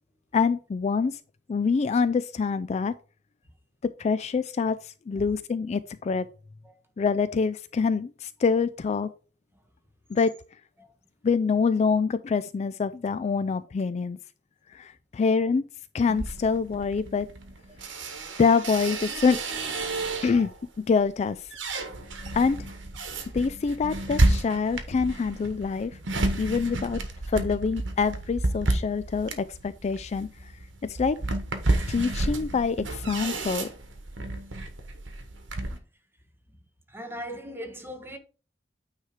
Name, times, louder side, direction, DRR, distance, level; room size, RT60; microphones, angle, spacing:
voice 1, 0.3-1.2 1.5-2.9 4.0-6.3 7.0-9.1 10.1-10.3 11.2-14.2 14.7-15.6 15.9-17.3 18.4-19.4 20.2-21.5 22.3-22.7 23.3-26.0 26.4-27.0 27.3-30.5 30.8-31.2 31.9-33.7, left 5 dB, 35° left, 0.3 m, -25 dB
sound 1, 16.1-20.6 21.1-35.8, right 2 dB, 90° right, 1.3 m, -31 dB
voice 2, 36.9-38.2, equal, 10° right, 1.3 m, -39 dB
9.3 x 3.2 x 4.8 m
head